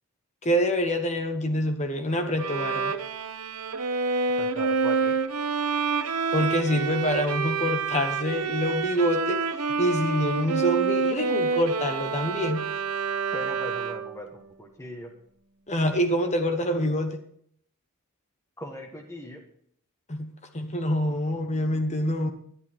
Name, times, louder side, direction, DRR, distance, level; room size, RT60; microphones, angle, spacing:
voice 1, 0.4-2.9 6.3-9.4 9.8-12.6 15.7-17.2 20.1-22.3, equal, 30° left, 6 dB, 1.2 m, -26 dB
Bowed string instrument, 2.4-14.2, right 4 dB, 85° right, 0.9 m, -28 dB
voice 2, 4.4-5.1 13.3-15.1 18.6-19.4, equal, 15° left, 2 dB, 1.5 m, -39 dB
11.5 x 11.0 x 4.5 m, 0.64 s
head